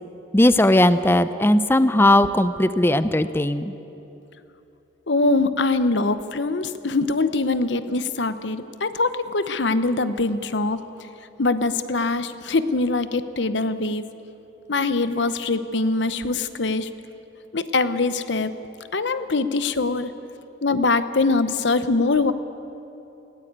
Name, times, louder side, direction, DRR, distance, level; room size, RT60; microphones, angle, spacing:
voice 1, 0.3-3.7, left 1 dB, 10° left, 13 dB, 0.5 m, -18 dB
voice 2, 5.1-10.8 11.4-14.0 14.7-16.9 17.5-18.5 18.9-20.1 20.6-22.3, left 3 dB, 70° left, 12 dB, 0.9 m, -23 dB
19.0 x 17.5 x 8.8 m, 3.0 s
head